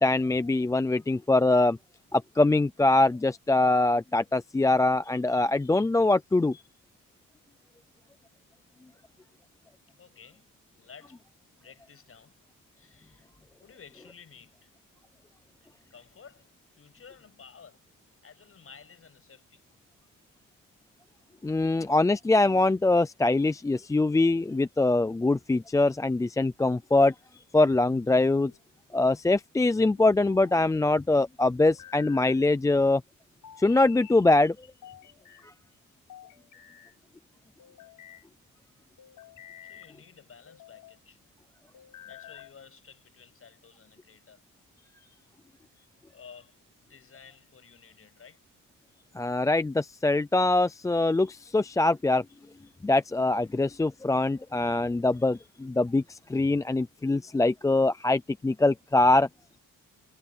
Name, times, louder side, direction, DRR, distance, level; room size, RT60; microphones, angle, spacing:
voice 1, 0.0-1.8 2.1-6.6 21.4-27.1 27.5-28.5 28.9-33.0 33.6-34.7 49.2-52.2 52.8-59.3, left 2 dB, 10° left, 0.3 m, -23 dB
voice 2, 10.0-10.5 10.7-12.4 12.7-13.3 13.6-14.7 15.6-16.5 16.8-17.9 18.2-19.6 39.6-41.2 42.1-44.4 46.1-48.4, left 6 dB, 40° left, 8.0 m, -53 dB
sound 1, 27.9-28.6 30.0-30.7 31.6-32.4 33.4-34.2 34.8-35.5 36.1-37.0 37.6-38.2 39.0-39.9 40.5-41.0 41.7-42.6, left 10 dB, 75° left, 3.9 m, -50 dB
wide cardioid pair, 170°, 33 cm